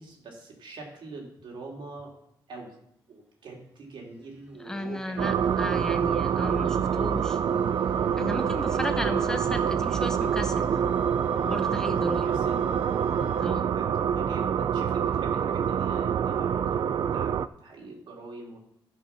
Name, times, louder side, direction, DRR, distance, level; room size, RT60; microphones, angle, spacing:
voice 1, 0.0-2.1 2.5-2.8 3.1-5.3 8.8-8.9 12.2-12.6 13.4-18.6, right 3 dB, 75° right, -1 dB, 2.9 m, -44 dB
sound 1, 3.8-13.4, equal, 10° right, 2.4 m, -48 dB
voice 2, 4.5-7.4 8.2-10.7 11.4-12.4 13.4-13.7, left 1 dB, 5° left, 7 dB, 1.0 m, -34 dB
sound 2, 5.2-17.5, right 8 dB, 60° right, 0.4 m, -26 dB
13.0 x 5.7 x 5.9 m, 0.74 s
cardioid pair, 120°, 8 cm